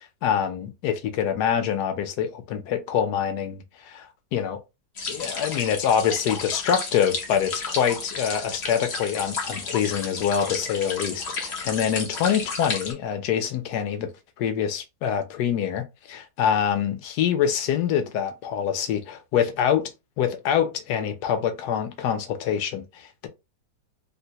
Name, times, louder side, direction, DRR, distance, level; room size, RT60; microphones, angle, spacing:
voice 1, 0.2-4.6 5.1-14.1 14.4-19.9 20.2-23.3, left 8 dB, 70° left, 1.1 m, -25 dB
sound 1, 5.0-12.9, left 4 dB, 55° left, 0.7 m, -32 dB
3.7 x 2.1 x 2.8 m
omnidirectional pair, 2.0 m